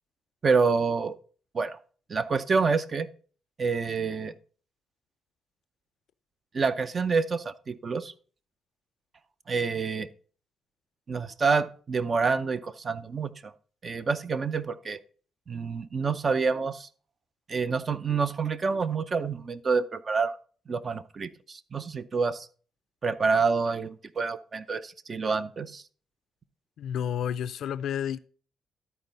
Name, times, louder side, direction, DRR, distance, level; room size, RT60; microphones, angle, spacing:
voice 1, 0.4-1.2 1.5-1.8 2.1-3.1 3.6-4.3 6.5-8.1 9.5-10.1 11.1-13.5 13.8-15.0 15.5-16.9 17.5-20.4 20.7-22.5 23.0-25.8, right 5 dB, 40° right, 0.6 m, -27 dB
voice 2, 26.8-28.2, left 9 dB, 70° left, 0.4 m, -30 dB
12.5 x 4.4 x 4.0 m
cardioid pair, 90°, 0 cm